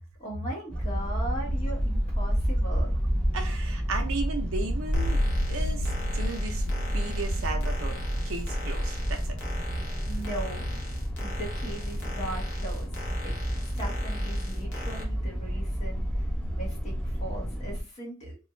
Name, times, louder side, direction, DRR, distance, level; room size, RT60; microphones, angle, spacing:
voice 1, 0.2-3.0 10.1-10.6 11.2-12.9 13.2-13.3 13.8-18.4, right 1 dB, 30° left, -2 dB, 1.0 m, -39 dB
sound 1, 0.7-17.8, equal, 5° left, 0.4 m, -30 dB
voice 2, 3.3-5.2 5.5-6.6 6.9-8.0 8.2-9.3, right 4 dB, 65° right, 4 dB, 0.5 m, -35 dB
sound 2, 4.9-11.0, left 1 dB, 80° left, 0.5 m, -34 dB
sound 3, 4.9-15.0, left 2 dB, 55° left, 0.8 m, -42 dB
2.5 x 2.3 x 3.0 m, 0.32 s
head